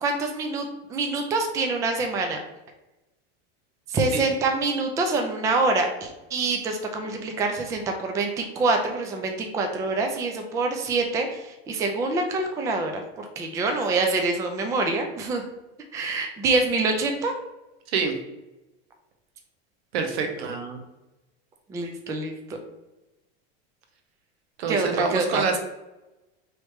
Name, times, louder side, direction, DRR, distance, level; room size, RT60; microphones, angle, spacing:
voice 1, 0.0-2.4 3.9-15.5 15.9-17.3 20.4-20.8 21.7-22.3 24.7-25.4, right 3 dB, 10° right, 4 dB, 0.3 m, -26 dB
voice 2, 19.9-20.5 24.6-25.6, right 5 dB, 85° right, 4 dB, 1.0 m, -26 dB
3.2 x 3.1 x 4.6 m, 1.0 s
supercardioid pair, 145°, 31 cm